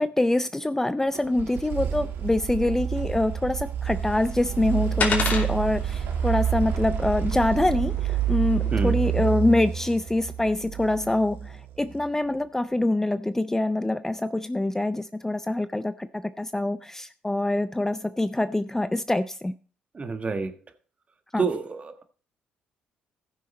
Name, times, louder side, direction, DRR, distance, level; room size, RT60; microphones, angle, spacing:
voice 1, 0.0-19.5 21.3-21.4, left 2 dB, 10° left, 0.5 m, -25 dB
sound 1, 1.1-11.9, right 9 dB, 70° right, 1.5 m, -28 dB
sound 2, 3.8-9.3, left 4 dB, 50° left, 2.9 m, -34 dB
voice 2, 19.9-20.5 21.4-22.0, right 4 dB, 35° right, 1.5 m, -28 dB
14.5 x 6.4 x 4.2 m
supercardioid pair, 65°, 4 cm